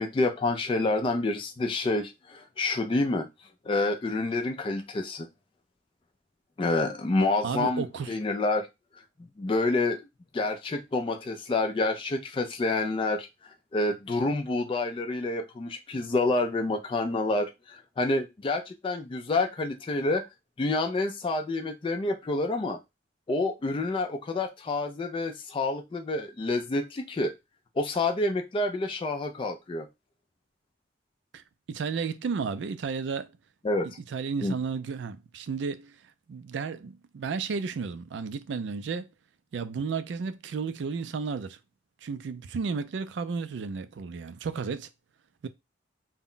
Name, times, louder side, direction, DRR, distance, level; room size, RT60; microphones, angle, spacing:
voice 1, 0.0-3.3 3.7-5.3 6.6-8.7 9.4-10.0 10.3-13.3 13.7-20.2 20.6-22.8 23.3-27.3 27.8-29.9 33.6-33.9 34.4-34.5, left 2 dB, 30° left, 0.3 m, -28 dB
voice 2, 7.4-8.1 31.3-31.4 31.7-33.3 33.8-36.0 36.3-39.1 39.5-41.6 42.0-44.9 45.4-45.5, right 5 dB, 70° right, 0.3 m, -33 dB
2.1 x 2.0 x 3.8 m
head